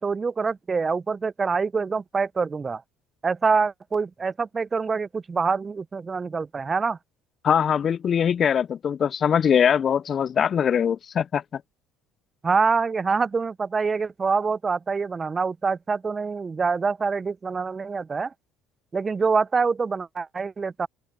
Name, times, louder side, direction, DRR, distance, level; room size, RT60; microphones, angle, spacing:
voice 1, 0.0-2.8 3.2-7.0 12.4-18.3 18.9-20.9, right 5 dB, 30° right, 0.5 m, -25 dB
voice 2, 7.4-11.6, left 8 dB, 45° left, 0.4 m, -22 dB
open air
supercardioid pair, 75°, 0 cm